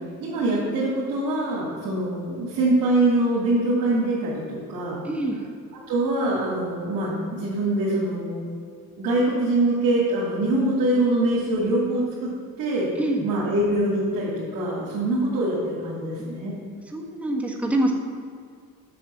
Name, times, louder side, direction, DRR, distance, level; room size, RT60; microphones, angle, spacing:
voice 1, 0.2-5.0 5.9-8.5 9.0-12.3 12.6-12.9 13.2-16.5, right 1 dB, 75° right, -6 dB, 2.7 m, -24 dB
voice 2, 5.0-5.5 13.0-13.3 16.2-16.3 16.9-17.9, right 1 dB, 5° right, -1 dB, 1.4 m, -26 dB
8.5 x 6.3 x 7.3 m, 2.2 s
cardioid pair, 125°, 34 cm